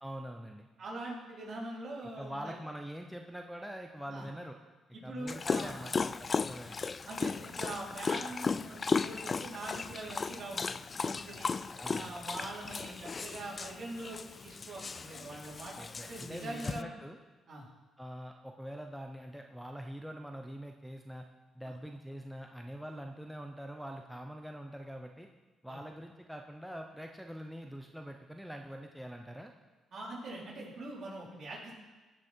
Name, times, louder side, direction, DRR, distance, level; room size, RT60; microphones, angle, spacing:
voice 1, 0.0-0.7 2.2-4.6 5.0-6.8 11.8-12.3 15.7-17.2 18.0-21.3 21.5-25.3 25.6-29.5, equal, ahead, 3 dB, 0.7 m, -44 dB
voice 2, 0.8-2.6 4.1-4.3 4.9-5.9 7.1-11.5 11.9-16.9 17.5-17.7 21.6-21.7 25.7-25.8 29.9-31.8, right 2 dB, 55° right, -5 dB, 4.0 m, -43 dB
Dog, 5.3-16.8, left 5 dB, 35° left, 0.3 m, -36 dB
16.5 x 6.3 x 4.5 m, 1.2 s
cardioid pair, 90°, 0 cm